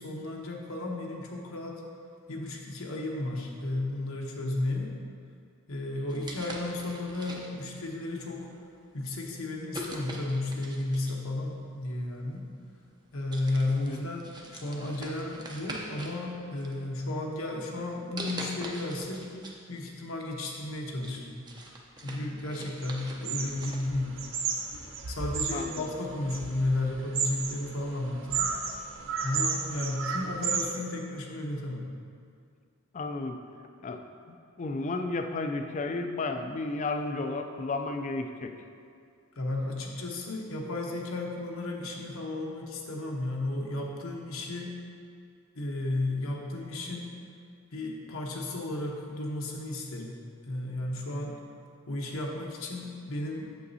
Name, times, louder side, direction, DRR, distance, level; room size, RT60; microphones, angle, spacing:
voice 1, 0.0-1.8 2.3-4.9 5.7-8.5 8.9-12.5 13.1-19.3 19.7-21.4 22.0-24.2 25.1-28.5 29.2-31.9 39.4-44.8 45.5-47.1 47.7-50.2 50.5-51.4 51.9-53.5, left 2 dB, 85° left, -1 dB, 1.0 m, -33 dB
sound 1, 6.1-7.7 8.5-8.7 9.7-11.3 12.4-12.5 12.9-13.1 13.3-16.2 16.6-17.3 18.2-19.6 19.9-20.0 20.5-23.9, right 1 dB, 20° right, 0.6 m, -42 dB
sound 2, 22.8-22.9 23.2-30.7, right 5 dB, 65° right, 0.6 m, -33 dB
voice 2, 32.9-33.4 33.8-34.0 34.3-38.5, left 3 dB, 35° left, 6 dB, 0.4 m, -32 dB
8.2 x 7.1 x 2.7 m, 2.3 s
head